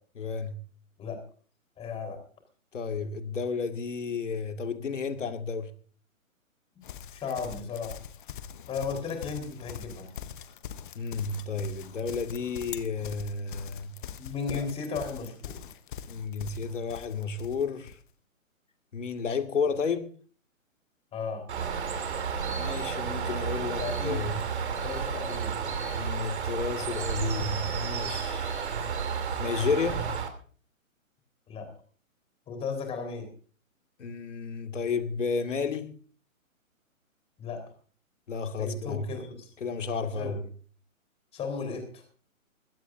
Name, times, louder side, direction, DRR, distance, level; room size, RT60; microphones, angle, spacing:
voice 1, 0.2-0.6 2.7-5.7 11.0-13.9 14.5-14.7 16.0-18.0 18.9-20.1 22.6-24.4 26.0-28.7 29.4-30.1 34.0-35.9 38.3-39.1 39.6-40.5, left 5 dB, 60° left, 2.2 m, -32 dB
voice 2, 1.8-2.2 7.1-7.9 8.7-10.1 14.2-15.6 21.1-21.5 23.8-24.3 24.7-25.6 31.5-31.7 32.5-33.3 37.4-37.6 38.6-39.5 40.1-40.4 41.3-42.0, left 5 dB, 15° left, 4.0 m, -35 dB
Livestock farm animals working animals, 6.8-18.0, left 9 dB, 35° left, 1.1 m, -43 dB
Bird, 21.5-30.3, right 6 dB, 50° right, 3.1 m, -32 dB
21.0 x 16.5 x 2.6 m
figure-of-eight pair, 135°, 41 cm